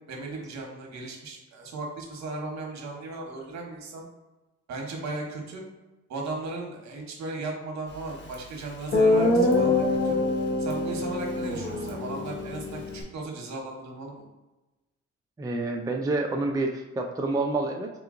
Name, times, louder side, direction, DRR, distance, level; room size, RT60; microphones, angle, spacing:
voice 1, 0.1-4.1 4.7-5.6 6.1-10.2 10.6-14.2, right 2 dB, 65° right, 0 dB, 1.2 m, -36 dB
Guitar, 8.3-8.4 8.9-13.0, left 2 dB, 40° left, 1.0 m, -24 dB
voice 2, 15.4-17.9, right 2 dB, 10° right, 2 dB, 0.4 m, -28 dB
3.3 x 3.0 x 3.7 m, 1.1 s
cardioid pair, 90°, 30 cm